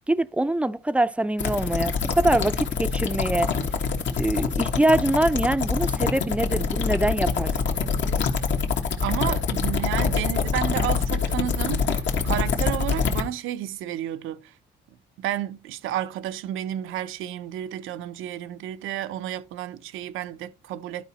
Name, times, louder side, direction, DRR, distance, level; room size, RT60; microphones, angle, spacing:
voice 1, 0.1-3.5 4.2-7.7, right 1 dB, 5° right, 0.4 m, -24 dB
sound 1, 1.4-13.2, left 5 dB, 65° left, 1.6 m, -25 dB
voice 2, 9.0-14.5 15.2-21.0, right 12 dB, 90° right, 0.6 m, -31 dB
11.5 x 4.8 x 4.2 m
cardioid pair, 90°, 20 cm